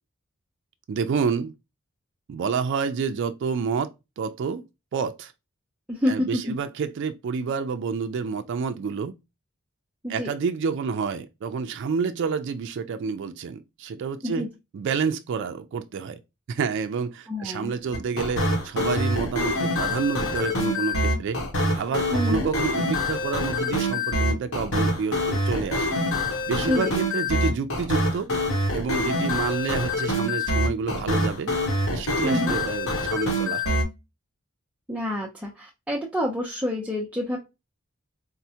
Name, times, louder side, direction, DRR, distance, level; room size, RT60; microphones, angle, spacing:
voice 1, 0.9-1.5 2.3-3.9 4.2-4.6 4.9-5.3 6.1-9.1 10.1-14.5 14.7-16.2 16.5-21.4 21.7-26.0 26.4-28.3 28.7-31.5 31.9-33.8, right 5 dB, 60° right, 0.3 m, -29 dB
voice 2, 5.9-6.5 10.0-10.3 14.2-14.5 17.3-17.7 22.1-22.5 26.6-26.9 32.2-32.6 34.9-37.4, left 1 dB, 5° right, 0.5 m, -27 dB
sound 1, 17.9-33.8, left 1 dB, 80° left, 1.0 m, -25 dB
4.4 x 2.0 x 2.7 m
head